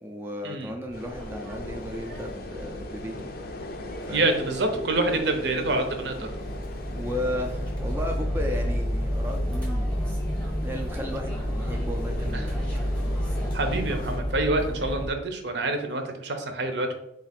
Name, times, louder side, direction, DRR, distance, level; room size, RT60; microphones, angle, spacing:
voice 1, 0.0-3.3 4.1-4.3 6.9-10.2 10.6-12.6, equal, 10° right, 1 dB, 0.3 m, -35 dB
sound 1, 0.9-14.2, left 1 dB, 55° left, 0.4 m, -40 dB
sound 2, 0.9-15.1, equal, 5° left, 0.8 m, -31 dB
voice 2, 4.1-6.3 12.3-12.4 13.5-16.9, right 2 dB, 65° right, 6 dB, 0.6 m, -27 dB
3.7 x 2.5 x 4.2 m, 0.82 s
head